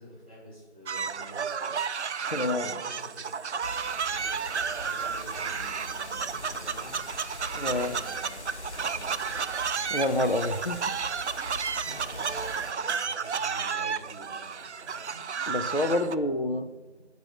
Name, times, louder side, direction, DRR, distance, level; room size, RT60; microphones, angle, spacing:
voice 1, 0.0-1.8 2.2-3.3 4.0-7.0 7.6-9.4 11.4-15.2 15.9-17.0, equal, 10° left, 2.4 m, -48 dB
sound 1, 0.9-16.1, right 6 dB, 80° right, 0.5 m, -32 dB
voice 2, 2.3-2.7 7.5-7.9 9.9-10.8 15.5-16.7, left 2 dB, 55° left, 0.7 m, -27 dB
sound 2, 3.6-12.7, left 1 dB, 80° left, 1.4 m, -43 dB
8.2 x 5.2 x 6.5 m
figure-of-eight pair, 175°, 34 cm